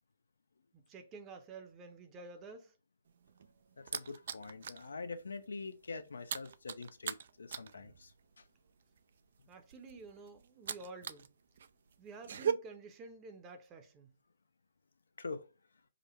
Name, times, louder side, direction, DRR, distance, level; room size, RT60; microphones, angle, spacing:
voice 1, 0.7-2.8 9.5-11.3 12.0-14.1, right 3 dB, 20° right, 0.7 m, -51 dB
sound 1, 3.1-4.9 5.2-5.4 5.7-11.3 11.6-12.5, right 8 dB, 55° right, 0.3 m, -40 dB
voice 2, 3.8-8.4 15.2-15.5, left 4 dB, 75° left, 0.5 m, -45 dB
5.0 x 2.1 x 3.0 m
figure-of-eight pair, 135°, 0 cm